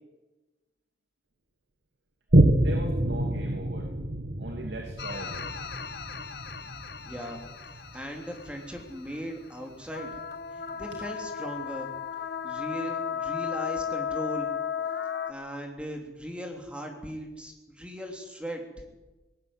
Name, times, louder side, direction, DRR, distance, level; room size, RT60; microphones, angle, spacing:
Boom, 2.3-9.2 9.8-9.9, right 1 dB, 70° right, 1.6 m, -27 dB
voice 1, 2.6-3.9 4.4-5.5, right 1 dB, 90° right, 3 dB, 2.7 m, -38 dB
sound 1, 5.0-9.6 9.9-15.3, left 7 dB, 70° left, 1.6 m, -35 dB
voice 2, 7.0-7.4 7.7-10.1 10.5-11.9 12.4-14.5 15.3-18.6, equal, 5° right, 2 dB, 3.1 m, -38 dB
20.0 x 14.0 x 9.7 m, 1.1 s
head